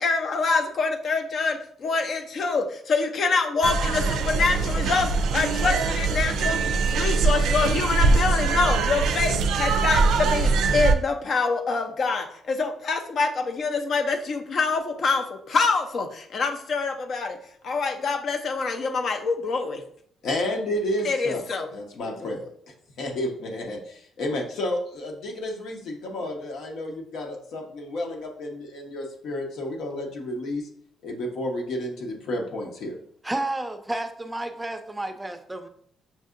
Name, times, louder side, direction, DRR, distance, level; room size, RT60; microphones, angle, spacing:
voice 1, 0.0-17.4 17.6-19.8 21.0-21.7 22.0-22.3, left 4 dB, 55° left, 6 dB, 0.6 m, -26 dB
sound 1, 3.6-10.9, right 4 dB, 80° right, 0.4 m, -22 dB
voice 2, 20.2-21.5 21.7-22.5 23.0-30.7 31.0-33.0, left 1 dB, 75° left, 1 dB, 0.9 m, -31 dB
voice 3, 33.2-35.7, right 1 dB, 10° right, 6 dB, 0.5 m, -31 dB
5.5 x 2.7 x 2.5 m, 0.63 s
cardioid pair, 90°, 0 cm